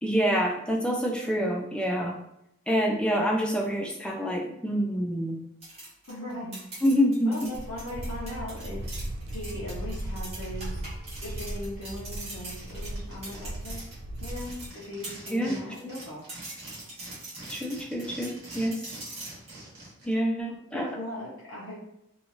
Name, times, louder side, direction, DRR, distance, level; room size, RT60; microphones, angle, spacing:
voice 1, 0.0-2.2 2.7-5.4 6.8-7.5 15.3-15.9 17.5-18.9 20.0-20.9, equal, 5° left, -1 dB, 0.3 m, -27 dB
sound 1, 5.6-15.4 15.7-19.5, right 2 dB, 30° right, 0.9 m, -43 dB
voice 2, 6.1-6.6 7.2-8.9 9.3-10.8 11.2-13.8 14.2-16.2 20.7-21.8, left 1 dB, 70° left, -9 dB, 0.8 m, -39 dB
sound 2, 7.5-14.7, right 1 dB, 80° right, 0.3 m, -37 dB
sound 3, 9.2-9.3 9.7-11.6 11.8-11.9 12.1-15.6 15.9-20.1, right 2 dB, 50° right, 1.1 m, -47 dB
2.8 x 2.4 x 2.6 m, 0.78 s
head